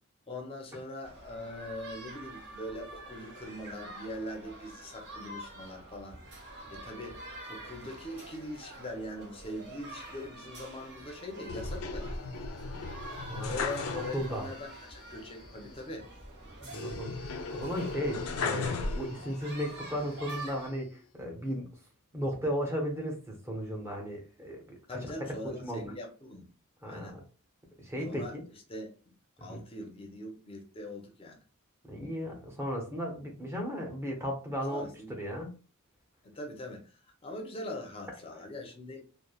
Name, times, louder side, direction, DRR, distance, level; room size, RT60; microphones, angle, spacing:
voice 1, 0.3-7.2 7.5-12.1 13.4-16.1 24.9-26.5 26.8-27.2 28.0-28.3 28.7-29.1 29.4-31.4 34.7-35.1 36.3-39.1, left 1 dB, 25° left, 0.6 m, -42 dB
sound 1, 1.0-20.7, right 1 dB, 50° right, 0.9 m, -46 dB
sound 2, 11.5-14.5 14.8-14.9 16.7-19.5 20.0-20.8, left 4 dB, 75° left, 0.4 m, -36 dB
voice 2, 13.2-13.6 14.1-14.5 16.6-21.7 22.1-25.0 25.4-25.8 26.8-27.2 27.8-28.4 29.5-29.6 31.8-35.5, equal, 10° right, 0.7 m, -35 dB
3.1 x 2.1 x 2.3 m
head